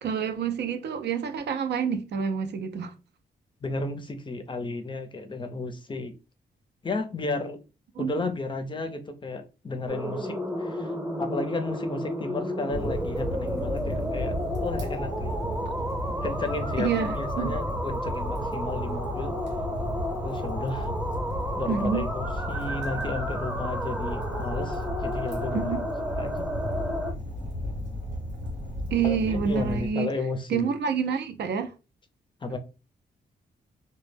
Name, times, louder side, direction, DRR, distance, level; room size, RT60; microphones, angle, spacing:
voice 1, 0.0-2.9 8.0-8.1 16.8-17.5 21.7-22.1 25.5-25.8 28.9-30.1 30.5-31.7, right 6 dB, 70° right, 0.5 m, -28 dB
voice 2, 3.6-6.1 6.8-7.6 8.0-10.9 11.2-15.3 16.2-19.3 20.2-20.9 21.5-25.8 26.2-26.5 29.0-30.7 32.4-32.6, left 2 dB, 25° left, 0.4 m, -33 dB
sound 1, 9.9-27.1, equal, 15° right, 0.8 m, -32 dB
Fire, 12.7-29.9, left 1 dB, 90° right, 1.0 m, -34 dB
2.1 x 2.1 x 3.2 m
cardioid pair, 85°, 18 cm